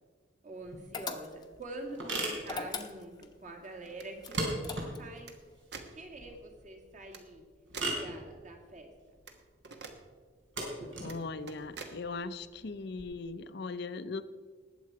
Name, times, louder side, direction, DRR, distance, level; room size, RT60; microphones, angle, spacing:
voice 1, 0.4-5.3 5.9-7.4 8.0-8.9, right 2 dB, 40° right, 2 dB, 2.0 m, -46 dB
sound 1, 0.6-13.0, right 1 dB, 80° right, 3.7 m, -40 dB
sound 2, 0.9-1.6 2.4-3.3 4.2-5.2, left 4 dB, 20° left, 0.8 m, -40 dB
sound 3, 2.5-2.8 3.9-4.5 5.3-5.4 5.7-5.9 7.1-7.2 7.7-8.0 9.3-9.4 9.6-10.0 11.0-11.2 11.5-12.0, right 4 dB, 60° right, 1.3 m, -46 dB
voice 2, 11.0-14.2, left 3 dB, 60° left, 13 dB, 0.6 m, -39 dB
19.5 x 7.9 x 4.7 m, 1.5 s
head